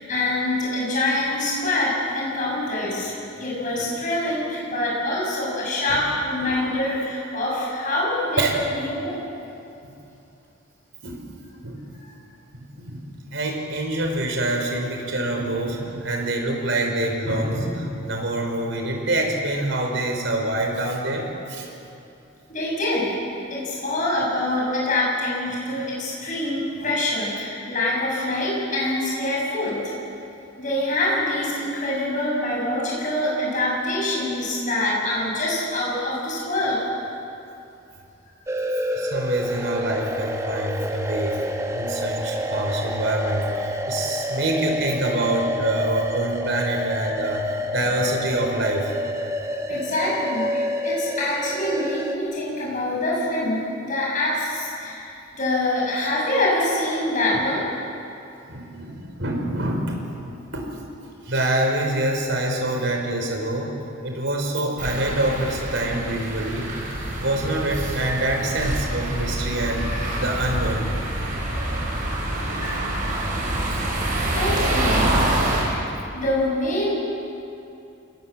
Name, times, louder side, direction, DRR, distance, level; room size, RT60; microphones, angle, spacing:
voice 1, 0.0-3.1 3.4-9.2 12.0-12.1 22.5-23.1 23.5-29.9 30.6-36.8 49.7-57.7 69.8-70.2 72.5-72.8 74.3-75.2 75.7-76.9, left 1 dB, 40° left, -4 dB, 7.1 m, -25 dB
voice 2, 12.5-21.7 39.0-41.4 41.7-49.1 49.7-49.8 58.5-60.0 60.5-60.7 61.3-66.7 67.2-69.8 70.2-70.9 73.7-73.8, right 1 dB, 65° right, 1 dB, 5.1 m, -26 dB
sound 1, 38.5-52.2, equal, 15° right, 1.3 m, -28 dB
sound 2, 64.8-75.6, right 1 dB, 40° right, 6.7 m, -26 dB
28.0 x 20.0 x 7.7 m, 2.7 s
head